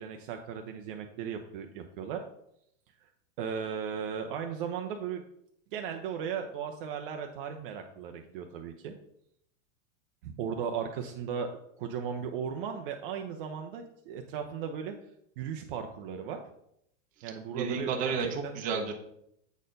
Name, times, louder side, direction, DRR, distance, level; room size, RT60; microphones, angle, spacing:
voice 1, 0.0-2.2 3.0-3.1 3.4-5.2 5.7-8.9 10.2-11.5 11.8-14.9 15.4-16.4 17.2-18.6, right 7 dB, 45° right, 5 dB, 0.7 m, -36 dB
voice 2, 17.5-18.9, right 5 dB, 20° right, 2 dB, 0.9 m, -31 dB
8.2 x 4.4 x 5.1 m, 0.75 s
supercardioid pair, 165°, 38 cm